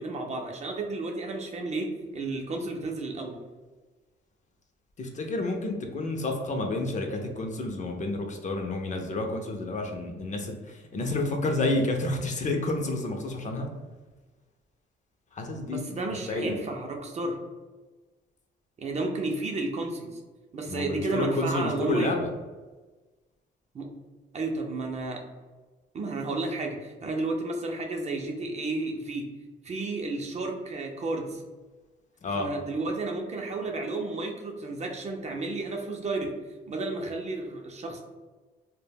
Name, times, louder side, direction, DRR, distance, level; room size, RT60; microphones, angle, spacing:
voice 1, 0.0-3.4 15.7-17.4 18.8-20.2 20.5-22.1 23.7-24.0 24.3-25.2 25.9-29.3 29.6-31.4 32.3-36.4 36.7-38.0, right 2 dB, 35° right, 2 dB, 0.4 m, -32 dB
voice 2, 5.0-13.7 15.3-16.6 20.7-22.3 32.2-32.5, left 2 dB, 40° left, 3 dB, 0.4 m, -30 dB
2.1 x 2.0 x 3.3 m, 1.3 s
cardioid pair, 90°, 20 cm